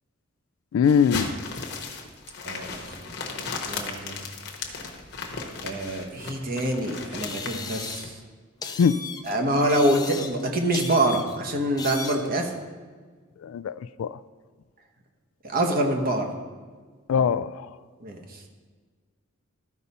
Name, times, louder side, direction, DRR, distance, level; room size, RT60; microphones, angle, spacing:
voice 1, 0.7-1.3 8.7-9.0 13.4-14.2 17.1-17.7, left 7 dB, 75° left, 17 dB, 0.3 m, -22 dB
sound 1, 0.8-8.1, left 4 dB, 55° left, 1.0 m, -36 dB
voice 2, 2.4-4.2 5.6-8.1 9.2-12.5 15.4-16.3 18.0-18.5, right 1 dB, 45° right, 3 dB, 1.0 m, -26 dB
sound 2, 6.6-6.7 7.2-8.2 8.6-9.3 9.7-10.5 10.7-11.4 11.8-12.3, left 5 dB, 20° left, 0.5 m, -37 dB
13.0 x 5.3 x 4.2 m, 1.5 s
head